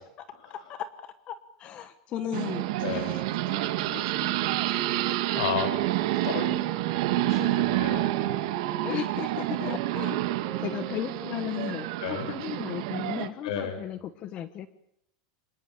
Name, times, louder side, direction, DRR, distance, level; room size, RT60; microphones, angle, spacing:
voice 1, 0.5-3.2 3.5-5.2 7.3-7.7 8.8-10.2 10.6-14.7, left 11 dB, 35° left, 12 dB, 1.2 m, -36 dB
Wind instrument woodwind instrument, 2.1-12.2, right 8 dB, 20° right, 2.0 m, -41 dB
sound 1, 2.3-13.3, right 16 dB, 65° right, 1.9 m, -29 dB
voice 2, 2.8-3.2 5.3-5.7 6.2-6.6 7.1-8.1 12.0-12.3 13.4-13.8, left 7 dB, 75° left, 8 dB, 6.1 m, -32 dB
25.5 x 19.5 x 8.8 m, 0.76 s
supercardioid pair, 155°, 3 cm